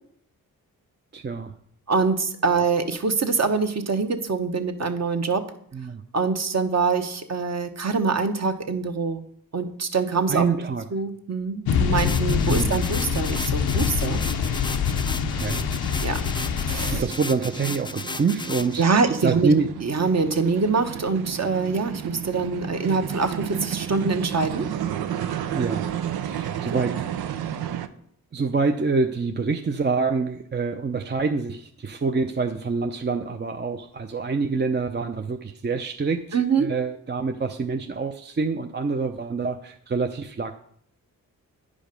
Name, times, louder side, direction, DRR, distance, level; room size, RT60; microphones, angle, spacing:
voice 1, 1.1-1.5 5.7-6.0 10.3-10.8 12.5-12.8 15.3-15.6 16.9-19.7 25.5-25.8 26.2-27.1 28.3-40.5, right 4 dB, 30° right, 5 dB, 0.6 m, -26 dB
voice 2, 1.9-5.4 6.1-9.2 9.5-10.5 10.9-14.2 16.0-16.3 16.7-17.0 18.8-19.5 19.8-24.7 26.7-26.8 36.3-36.7, right 4 dB, 45° right, 6 dB, 1.1 m, -24 dB
sound 1, 11.7-17.0, left 7 dB, 85° left, 0.7 m, -25 dB
sound 2, 12.0-18.8, left 3 dB, 15° left, 0.4 m, -35 dB
sound 3, 13.0-27.9, right 10 dB, 90° right, 0.6 m, -33 dB
9.7 x 5.1 x 5.2 m, 0.67 s
cardioid pair, 65°, 36 cm